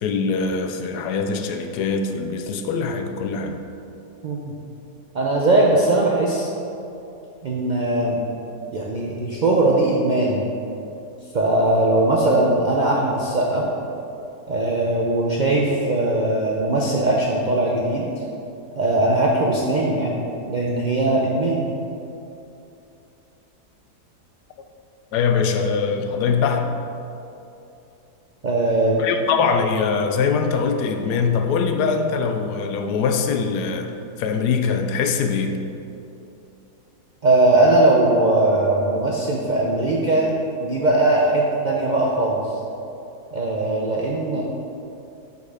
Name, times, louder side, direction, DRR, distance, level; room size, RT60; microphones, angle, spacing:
voice 1, 0.0-3.6 25.1-26.7 29.0-35.6, left 5 dB, 90° left, 6 dB, 1.2 m, -22 dB
voice 2, 5.1-6.5 7.4-8.2 8.7-10.4 11.3-13.7 14.5-18.1 18.8-20.2 20.5-21.6 28.4-29.0 37.2-40.3 40.6-42.5 43.3-44.4, right 2 dB, 70° right, -3 dB, 0.4 m, -20 dB
6.5 x 5.5 x 4.8 m, 2.8 s
omnidirectional pair, 1.7 m